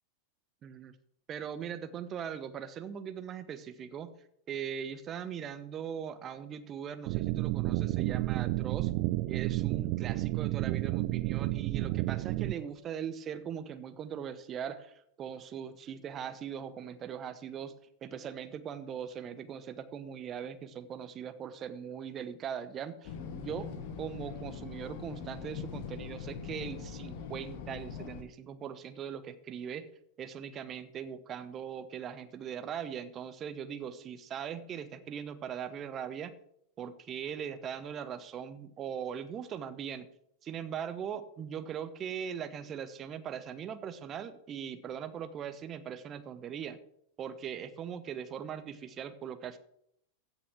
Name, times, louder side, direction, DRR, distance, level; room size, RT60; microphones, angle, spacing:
voice 1, 0.6-0.9 1.3-4.1 4.5-8.9 9.3-17.7 18.0-23.7 24.0-29.9 30.2-36.3 36.8-40.1 40.4-46.8 47.2-49.6, right 8 dB, 30° right, 12 dB, 1.0 m, -40 dB
sound 1, 7.1-12.5, right 18 dB, 45° right, 0.7 m, -31 dB
sound 2, 23.0-28.2, left 6 dB, 45° left, 1.3 m, -42 dB
15.5 x 6.1 x 6.0 m, 0.73 s
figure-of-eight pair, 90°, 0 cm